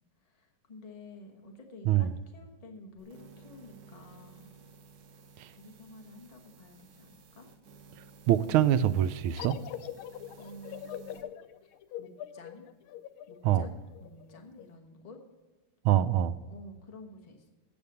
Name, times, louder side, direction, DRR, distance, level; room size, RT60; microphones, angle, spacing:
voice 1, 0.2-4.5 5.6-7.5 10.4-11.3 12.0-12.7 13.3-15.2 16.5-17.5, left 1 dB, 25° left, 2 dB, 1.1 m, -50 dB
sound 1, 3.0-11.3, right 4 dB, 55° right, 1.4 m, -55 dB
voice 2, 8.3-9.6 13.4-13.7 15.8-16.4, right 11 dB, 85° right, 13 dB, 1.4 m, -24 dB
sound 2, 9.4-14.7, left 11 dB, 80° left, 1.4 m, -43 dB
9.5 x 6.9 x 6.9 m, 1.2 s
omnidirectional pair, 2.3 m